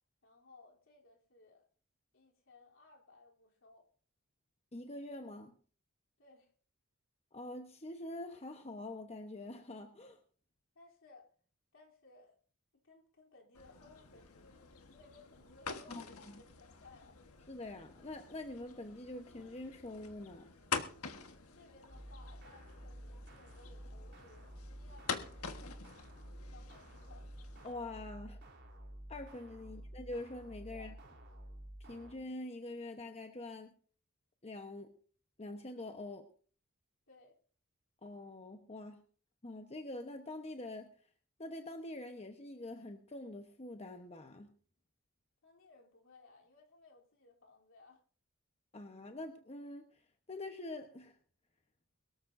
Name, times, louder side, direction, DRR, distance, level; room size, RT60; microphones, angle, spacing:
voice 1, 0.2-1.7 2.1-3.9 6.2-6.5 10.8-11.3 11.7-12.4 12.8-14.5 14.8-17.2 21.5-25.8 26.5-27.3 30.7-31.0 37.1-37.4 45.4-48.0, left 3 dB, 65° left, 3.4 m, -61 dB
voice 2, 4.7-5.5 7.3-10.2 15.9-16.4 17.5-20.5 27.6-28.4 29.1-30.9 31.9-33.7 34.4-34.9 35.4-36.3 38.0-39.0 39.4-40.9 41.4-44.5 48.7-51.2, left 2 dB, 30° left, 1.0 m, -45 dB
sound 1, 13.5-27.7, left 5 dB, 85° left, 1.4 m, -46 dB
sound 2, 21.9-32.1, right 1 dB, 55° right, 3.5 m, -51 dB
22.5 x 13.5 x 2.6 m
head